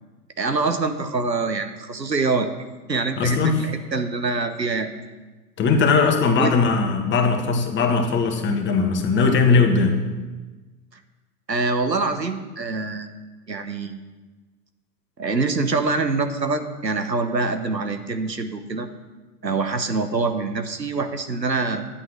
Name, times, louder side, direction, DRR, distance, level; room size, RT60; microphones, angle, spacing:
voice 1, 0.4-2.5 2.9-4.9 6.3-6.6 11.5-13.1 13.5-14.1 15.2-18.9 19.4-21.9, right 3 dB, 90° right, 8 dB, 1.1 m, -25 dB
voice 2, 3.2-3.6 5.6-10.0, left 4 dB, 25° left, 3 dB, 1.7 m, -19 dB
11.5 x 8.3 x 6.1 m, 1.2 s
figure-of-eight pair, 95°, 49 cm